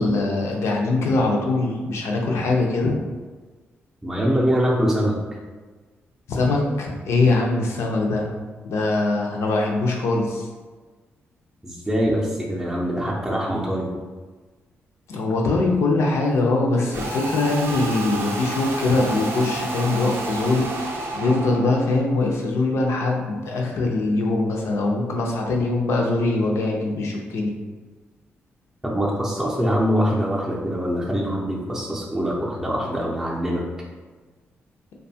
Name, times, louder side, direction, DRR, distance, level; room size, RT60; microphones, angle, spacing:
voice 1, 0.0-3.0 6.3-8.3 8.6-10.5 15.1-20.7 21.1-27.5, left 2 dB, 80° left, 0 dB, 0.5 m, -22 dB
voice 2, 4.0-5.2 11.6-13.9 28.8-33.6, equal, 10° right, -4 dB, 0.5 m, -23 dB
sound 1, 16.9-22.0, right 2 dB, 60° right, 0.4 m, -30 dB
2.6 x 2.2 x 2.7 m, 1.4 s
cardioid pair, 75°, 5 cm